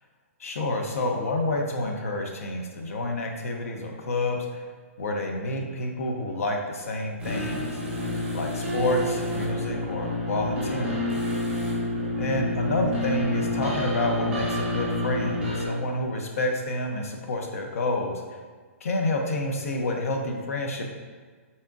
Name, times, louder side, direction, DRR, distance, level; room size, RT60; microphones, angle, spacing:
voice 1, 0.4-4.7 5.0-11.0 12.2-18.2 18.8-20.8, left 2 dB, 70° left, 2 dB, 0.7 m, -29 dB
sound 1, 7.2-15.7, left 1 dB, 10° right, 1.0 m, -28 dB
4.2 x 3.4 x 2.5 m, 1.5 s
hypercardioid pair, 145°, 8 cm